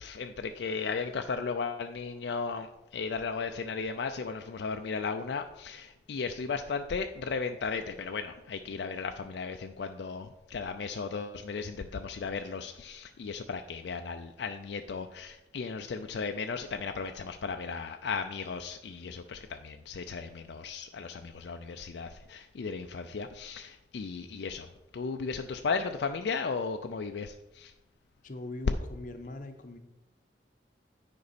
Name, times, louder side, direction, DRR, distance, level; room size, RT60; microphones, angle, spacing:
voice 1, 0.0-27.7, left 5 dB, 70° left, 6 dB, 0.4 m, -35 dB
voice 2, 28.2-29.8, left 2 dB, 45° left, 7 dB, 0.7 m, -41 dB
9.5 x 5.3 x 4.1 m, 0.95 s
head